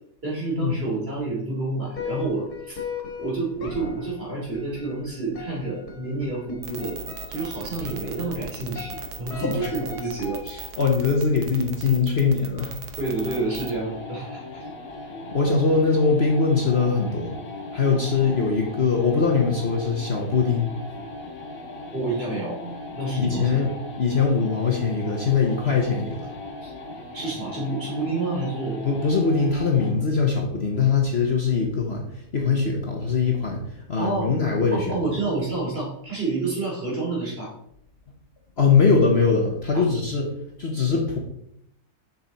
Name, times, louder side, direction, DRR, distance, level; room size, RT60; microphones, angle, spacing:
voice 1, 0.2-2.8 3.2-7.0 7.3-10.4 13.0-14.6 21.9-22.6 22.9-23.7 26.6-26.7 27.1-28.8 34.0-34.3 34.7-37.5 39.7-39.9, right 3 dB, 40° right, -4 dB, 3.2 m, -29 dB
sound 1, 1.9-10.9, left 5 dB, 85° left, 2.2 m, -38 dB
sound 2, 6.6-13.8, right 7 dB, 75° right, 1.5 m, -37 dB
voice 2, 9.3-9.6 10.5-12.7 15.3-17.4 17.7-20.7 23.1-23.7 24.0-26.3 28.8-34.9 38.6-40.2 40.6-41.2, left 5 dB, 45° left, 0 dB, 1.2 m, -22 dB
sound 3, 13.0-30.0, left 2 dB, 65° left, 1.7 m, -38 dB
7.1 x 6.3 x 4.1 m, 0.73 s
omnidirectional pair, 1.7 m